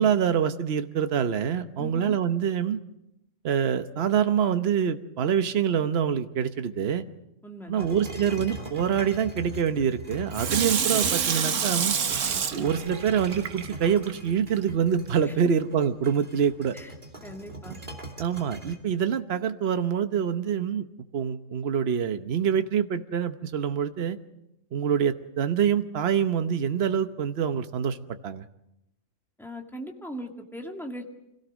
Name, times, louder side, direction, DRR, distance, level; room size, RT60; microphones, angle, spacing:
voice 1, 0.0-2.8 3.4-7.0 7.7-11.9 12.5-16.8 18.2-20.9 21.1-24.2 24.7-28.0 28.2-28.5, right 8 dB, 50° right, 9 dB, 1.1 m, -25 dB
voice 2, 1.8-2.2 7.4-7.8 15.2-15.4 16.7-16.9 17.2-17.8 29.4-31.0, equal, ahead, 2 dB, 2.1 m, -39 dB
sound 1, 7.8-11.5 12.1-18.8, right 1 dB, 35° right, 3.1 m, -41 dB
Water tap faucet / Sink (filling or washing), 10.3-14.1 14.6-14.7, right 7 dB, 70° right, 1.4 m, -27 dB
26.5 x 17.5 x 6.3 m, 0.84 s
omnidirectional pair, 1.4 m